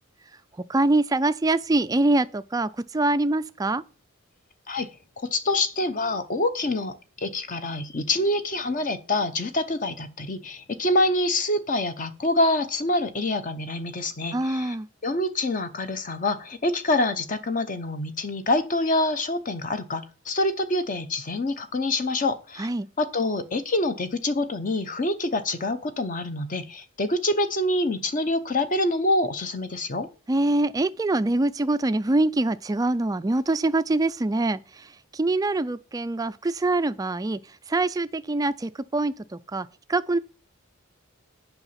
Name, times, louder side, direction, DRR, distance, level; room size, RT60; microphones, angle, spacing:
voice 1, 0.7-3.8 14.3-14.9 22.6-22.9 30.3-37.4 37.7-40.2, right 2 dB, 15° right, 0.3 m, -24 dB
voice 2, 5.2-14.7 15.0-22.7 23.0-30.1, left 2 dB, 35° left, 0.7 m, -26 dB
8.0 x 5.8 x 5.7 m
head